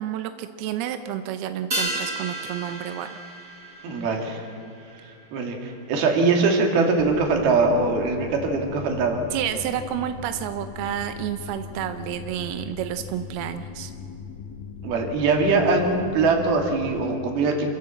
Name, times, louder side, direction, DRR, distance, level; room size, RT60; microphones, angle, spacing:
voice 1, 0.0-3.1 9.3-13.9, right 10 dB, 80° right, 8 dB, 2.3 m, -30 dB
sound 1, 1.7-6.4 6.7-6.8, right 1 dB, 20° right, 3.8 m, -34 dB
voice 2, 3.8-4.4 5.3-9.2 14.8-17.6, right 3 dB, 60° right, 2 dB, 3.9 m, -22 dB
sound 2, 7.0-17.0, left 5 dB, 80° left, 4.1 m, -39 dB
28.0 x 15.0 x 7.7 m, 2.6 s
omnidirectional pair, 5.3 m